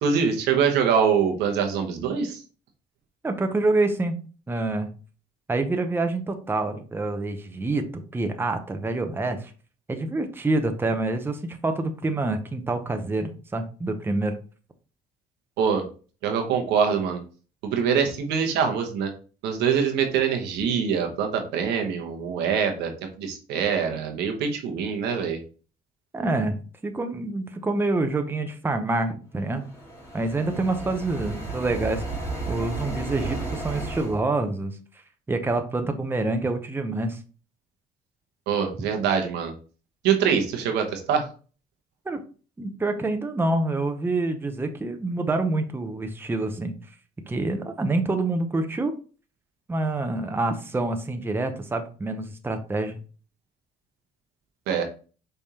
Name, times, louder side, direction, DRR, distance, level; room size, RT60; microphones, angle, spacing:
voice 1, 0.0-2.4 15.6-15.9 16.2-17.2 17.6-19.1 19.4-22.9 23.2-25.4 38.5-39.5 40.0-41.3 54.7-54.8, right 7 dB, 85° right, 4 dB, 1.1 m, -24 dB
voice 2, 3.2-4.1 4.5-4.9 5.5-9.5 9.9-14.3 26.1-29.6 30.1-32.0 32.5-34.8 35.3-37.2 42.1-42.2 42.6-46.7 47.3-48.9 49.7-53.0, right 2 dB, 15° right, 6 dB, 0.7 m, -27 dB
sound 1, 29.5-34.2, right 2 dB, 15° left, 2.2 m, -33 dB
5.2 x 3.4 x 2.8 m, 0.37 s
cardioid pair, 110°, 17 cm